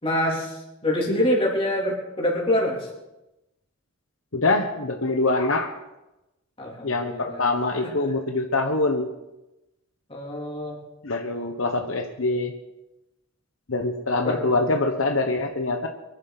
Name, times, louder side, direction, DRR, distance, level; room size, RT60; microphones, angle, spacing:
voice 1, 0.0-0.6 0.8-2.9 6.6-7.6 8.0-8.1 10.1-10.8 14.2-14.4, left 1 dB, 25° left, -3 dB, 3.4 m, -25 dB
voice 2, 4.3-5.7 6.8-9.1 11.0-12.5 13.7-15.9, left 2 dB, 75° left, 4 dB, 1.2 m, -24 dB
24.0 x 11.5 x 4.2 m, 0.95 s
head